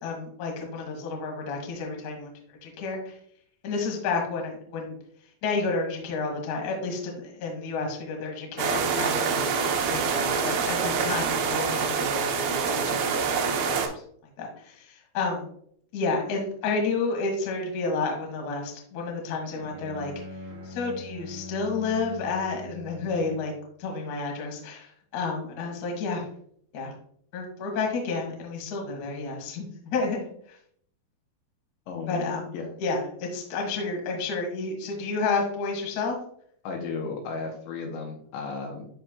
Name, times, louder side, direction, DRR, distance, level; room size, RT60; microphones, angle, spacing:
voice 1, 0.0-2.3 2.6-3.2 3.6-5.0 5.4-13.9 14.4-15.5 15.9-20.1 20.6-23.5 23.8-26.3 26.7-26.9 27.3-30.2 30.5-30.6 32.1-32.5 32.8-36.2, left 4 dB, 60° left, 1 dB, 2.1 m, -31 dB
sound 1, 8.6-13.9, right 5 dB, 80° right, 2.2 m, -26 dB
Bowed string instrument, 19.4-23.5, left 2 dB, 25° right, 1.6 m, -41 dB
voice 2, 31.9-32.7 36.6-38.9, left 4 dB, 80° left, 2 dB, 3.0 m, -34 dB
12.0 x 4.2 x 2.2 m, 0.63 s
omnidirectional pair, 5.5 m